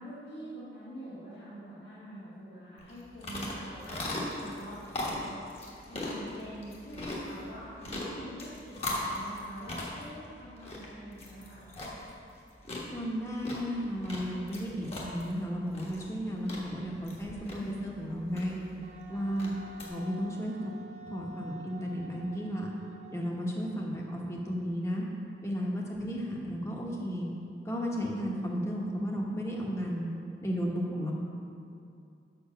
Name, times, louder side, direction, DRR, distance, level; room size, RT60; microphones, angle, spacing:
voice 1, 0.0-4.8 5.2-5.4 5.9-11.7 19.1-19.2, right 1 dB, 75° left, -10 dB, 1.7 m, -46 dB
sound 1, 2.8-19.9, left 1 dB, 35° left, 1.3 m, -40 dB
voice 2, 12.9-18.6 19.1-19.5 19.8-20.7 21.1-22.7 23.1-25.0 25.4-27.3 27.6-30.1 30.4-31.1, equal, 15° left, -2 dB, 1.0 m, -34 dB
Wind instrument woodwind instrument, 18.8-24.3, right 2 dB, 40° right, 0.5 m, -50 dB
6.9 x 6.4 x 5.7 m, 2.5 s
head